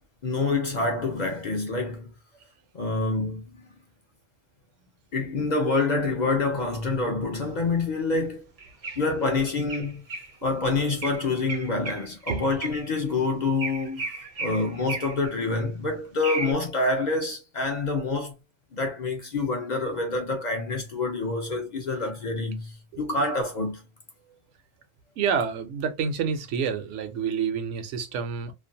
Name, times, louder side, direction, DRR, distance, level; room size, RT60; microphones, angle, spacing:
voice 1, 0.2-2.1 2.7-3.6 5.1-8.4 9.0-10.0 10.4-18.3 18.7-23.8, left 3 dB, 50° left, 0.5 m, -27 dB
sound 1, 8.6-9.0 9.7-10.3 11.0-13.0 13.6-15.3 16.2-16.5, right 3 dB, 50° right, 0.4 m, -34 dB
voice 2, 25.2-28.5, right 6 dB, 85° right, 0.9 m, -28 dB
2.5 x 2.1 x 2.6 m
omnidirectional pair, 1.2 m